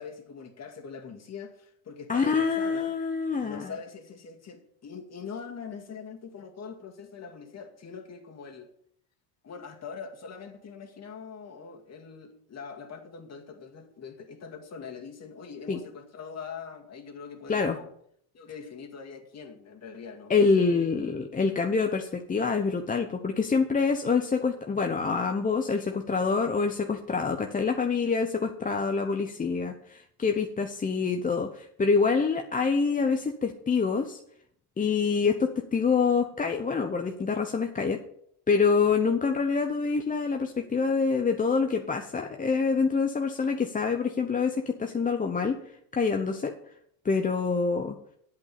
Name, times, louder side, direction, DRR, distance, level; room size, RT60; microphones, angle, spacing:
voice 1, 0.0-2.9 3.4-8.7 9.4-17.9 18.3-21.0, left 5 dB, 30° left, 2.1 m, -43 dB
voice 2, 2.1-3.7 15.7-15.8 17.5-17.8 20.3-34.2 34.8-38.0 38.5-45.6 45.9-46.5 47.0-48.0, left 5 dB, 15° left, 0.8 m, -26 dB
8.3 x 8.2 x 6.9 m
supercardioid pair, 105°, 48 cm